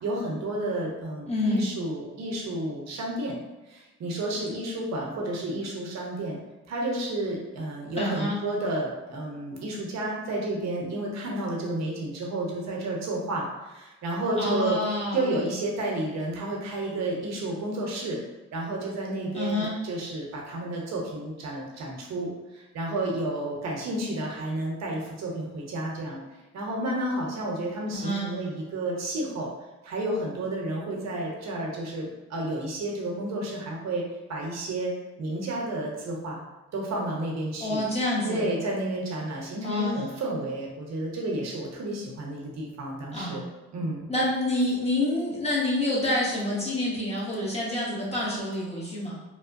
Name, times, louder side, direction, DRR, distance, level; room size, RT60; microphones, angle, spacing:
voice 1, 0.0-3.4 3.7-6.4 6.7-18.2 18.5-26.2 26.5-29.5 29.8-34.9 35.2-36.4 36.7-37.8 38.3-43.4 43.7-44.1, right 1 dB, 60° right, -1 dB, 0.7 m, -31 dB
voice 2, 1.3-1.6 8.0-8.4 14.4-15.3 19.3-19.7 27.9-28.3 37.6-38.5 39.6-40.0 43.1-43.4 44.1-49.1, left 1 dB, 20° left, -6 dB, 1.0 m, -27 dB
2.9 x 2.1 x 2.5 m, 1.1 s
cardioid pair, 90°, 30 cm